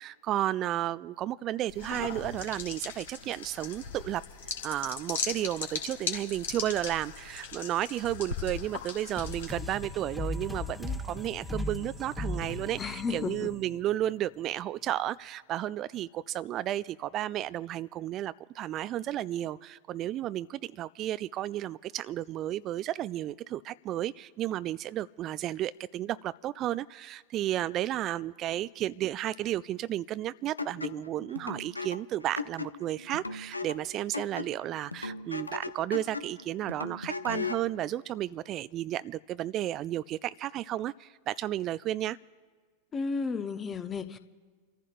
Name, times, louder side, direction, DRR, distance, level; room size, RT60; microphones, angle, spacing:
voice 1, 0.0-4.2 4.6-42.2, right 13 dB, 35° right, 16 dB, 0.3 m, -33 dB
sound 1, 1.7-9.8, left 6 dB, 60° left, 2.2 m, -38 dB
sound 2, 9.2-14.5, left 2 dB, 5° left, 1.3 m, -38 dB
voice 2, 12.8-13.5 42.9-44.2, left 5 dB, 20° left, 10 dB, 0.9 m, -33 dB
sound 3, 30.6-37.7, left 4 dB, 80° left, 0.7 m, -38 dB
30.0 x 14.5 x 2.5 m, 1.5 s
figure-of-eight pair, 90°, 0 cm